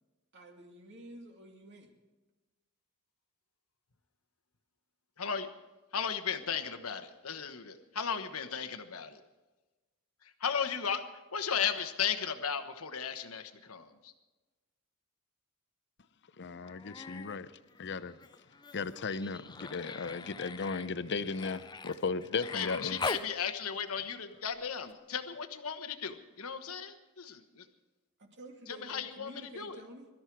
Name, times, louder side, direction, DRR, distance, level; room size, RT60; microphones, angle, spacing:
voice 1, 0.3-1.9 28.2-30.1, right 1 dB, 55° right, 2.6 m, -50 dB
voice 2, 5.9-9.2 10.2-11.0 11.3-14.1 22.5-27.6 28.7-29.8, left 7 dB, 75° left, 1.3 m, -36 dB
voice 3, 16.4-17.5 17.8-18.2 18.7-23.0, left 4 dB, 55° left, 0.7 m, -36 dB
Human voice, 16.6-17.4 17.7-23.3 24.9-25.0, left 4 dB, 20° left, 0.5 m, -42 dB
23.0 x 13.0 x 4.7 m
head